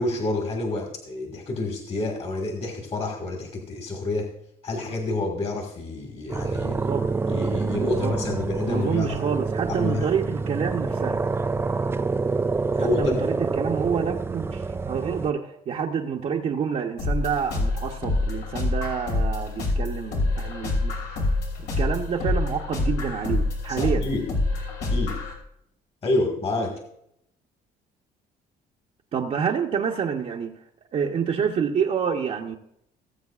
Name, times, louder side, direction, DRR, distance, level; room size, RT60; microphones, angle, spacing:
voice 1, 0.0-4.3 4.6-6.8 7.3-9.2 9.7-10.1 12.8-13.2 23.7-24.3 24.9-25.2 26.0-26.8, left 2 dB, 35° left, 1.8 m, -28 dB
sound 1, 6.3-15.3, right 4 dB, 15° right, 0.3 m, -27 dB
voice 2, 6.6-7.1 7.6-8.1 8.7-11.2 12.8-20.9 21.8-24.1 29.1-30.5 30.9-32.6, right 7 dB, 45° right, 0.8 m, -28 dB
sound 2, 17.0-25.3, left 2 dB, 85° left, 2.8 m, -26 dB
19.0 x 7.7 x 2.4 m
cardioid pair, 110°, 17 cm